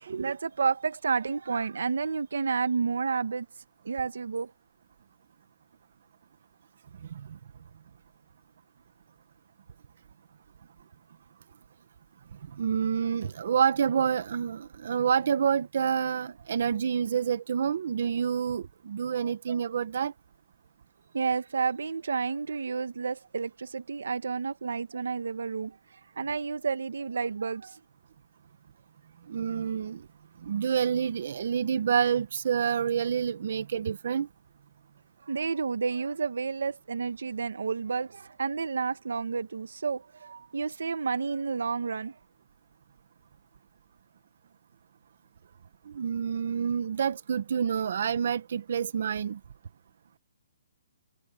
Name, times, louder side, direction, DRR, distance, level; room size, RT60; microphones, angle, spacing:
voice 1, 0.0-3.5 3.9-4.5 19.2-19.3 21.1-25.7 26.2-27.8 35.3-42.1, right 5 dB, 85° right, 1.8 m, -30 dB
voice 2, 12.5-20.1 29.3-30.1 30.4-34.3 45.8-49.4, right 7 dB, 55° right, 1.7 m, -28 dB
hypercardioid pair, 170°, 0 cm